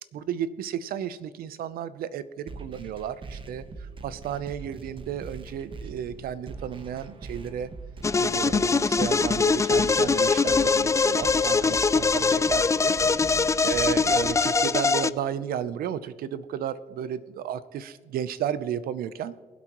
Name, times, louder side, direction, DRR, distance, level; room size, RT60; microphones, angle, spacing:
voice 1, 0.0-3.6 4.0-7.7 8.2-12.9 13.6-19.3, right 9 dB, 80° right, 15 dB, 0.7 m, -33 dB
sound 1, 2.5-14.5, right 3 dB, 35° right, 1.2 m, -42 dB
sound 2, 8.0-15.1, left 4 dB, 20° left, 0.3 m, -22 dB
23.0 x 8.2 x 3.0 m, 1.5 s
cardioid pair, 90°, 15 cm